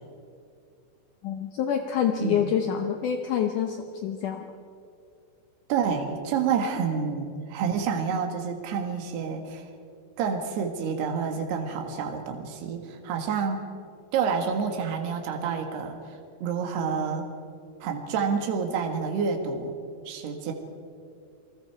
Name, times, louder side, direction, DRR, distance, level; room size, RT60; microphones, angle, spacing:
voice 1, 1.2-4.5, left 8 dB, 80° left, 5 dB, 1.8 m, -27 dB
voice 2, 2.2-2.5 5.7-9.7 10.2-13.6 14.1-17.3 17.8-19.7 20.1-20.5, right 6 dB, 75° right, 3 dB, 3.7 m, -28 dB
27.5 x 20.5 x 4.8 m, 2.4 s
omnidirectional pair, 4.8 m